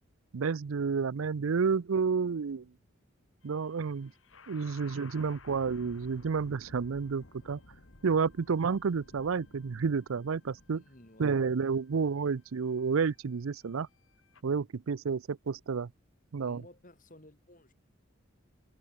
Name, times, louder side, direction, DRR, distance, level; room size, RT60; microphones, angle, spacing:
voice 1, 0.3-2.6 3.4-4.1 4.5-7.6 8.0-10.8 11.2-13.9 14.4-15.9 16.3-16.6, right 5 dB, 90° right, 0.5 m, -30 dB
sound 1, 3.4-14.4, left 3 dB, 75° left, 2.0 m, -56 dB
voice 2, 4.8-5.1 8.5-8.6 10.7-11.4 16.4-17.7, left 1 dB, 40° left, 4.8 m, -56 dB
head